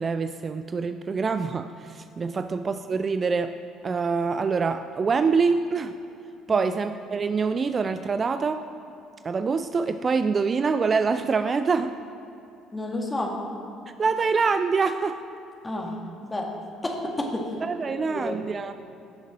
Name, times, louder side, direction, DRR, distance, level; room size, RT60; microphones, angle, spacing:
voice 1, 0.0-3.6 3.8-5.9 6.5-8.7 9.2-12.0 14.0-15.2 17.6-18.7, right 5 dB, 35° right, 10 dB, 0.4 m, -25 dB
voice 2, 12.7-13.3 15.6-16.5 16.8-17.4 18.0-18.4, left 1 dB, 20° left, 0 dB, 2.0 m, -31 dB
16.0 x 6.6 x 3.9 m, 2.7 s
figure-of-eight pair, 55°, 0 cm